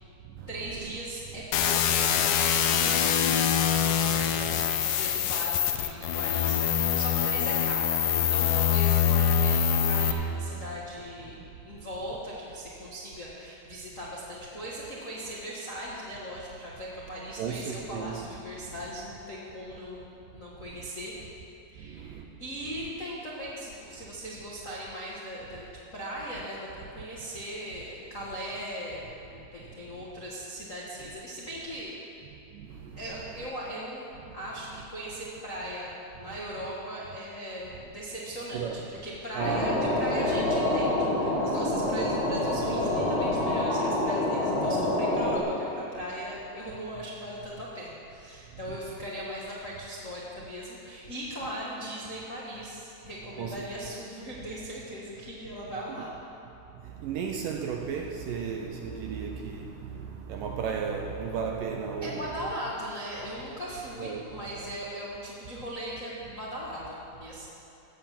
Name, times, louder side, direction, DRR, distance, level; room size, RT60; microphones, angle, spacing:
voice 1, 0.5-3.5 3.7-21.2 21.7-31.9 33.0-34.0 34.3-38.7 39.0-56.1 62.0-67.5, equal, 55° left, -7 dB, 0.8 m, -39 dB
sound 1, 1.5-10.1, left 8 dB, 75° left, 2.0 m, -24 dB
voice 2, 4.2-4.6 9.0-9.2 17.4-18.2 18.6-18.7 20.8-20.9 21.8-22.3 29.6-29.7 31.0-31.1 32.3-33.5 34.2-34.3 36.3-36.4 38.5-38.9 39.3-39.8 41.8-42.1 48.7-48.8 53.4-53.7 56.7-62.3 64.0-64.3, right 6 dB, 75° right, 2 dB, 2.0 m, -35 dB
sound 2, 39.4-45.4, left 1 dB, 30° left, 1.2 m, -27 dB
15.5 x 8.1 x 7.3 m, 2.9 s
omnidirectional pair, 4.5 m